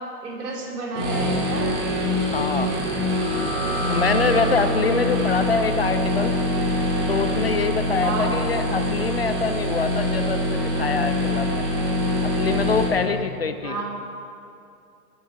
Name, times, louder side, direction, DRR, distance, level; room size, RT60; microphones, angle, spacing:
voice 1, 0.0-1.7 4.9-5.3 8.0-8.4 13.6-13.8, right 3 dB, 85° right, -1 dB, 3.4 m, -31 dB
sound 1, 0.9-12.9, left 1 dB, 30° right, 2.0 m, -24 dB
voice 2, 2.3-2.7 3.9-6.3 7.1-11.7 12.2-13.8, left 5 dB, 45° left, 9 dB, 0.4 m, -25 dB
sound 2, 2.8-10.0, equal, 10° left, 1.6 m, -36 dB
17.5 x 10.5 x 4.1 m, 2.5 s
hypercardioid pair, 175°, 46 cm